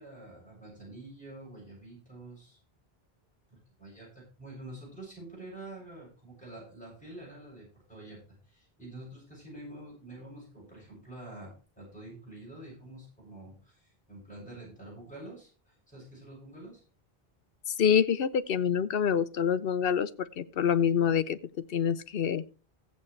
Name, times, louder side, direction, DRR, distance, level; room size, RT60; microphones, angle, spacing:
voice 1, 0.0-2.6 3.5-8.2 8.5-16.8, right 1 dB, 5° left, -5 dB, 7.5 m, -47 dB
voice 2, 17.7-21.4 21.7-22.4, left 8 dB, 70° left, 14 dB, 0.9 m, -26 dB
15.5 x 8.3 x 3.2 m, 0.35 s
omnidirectional pair, 1.0 m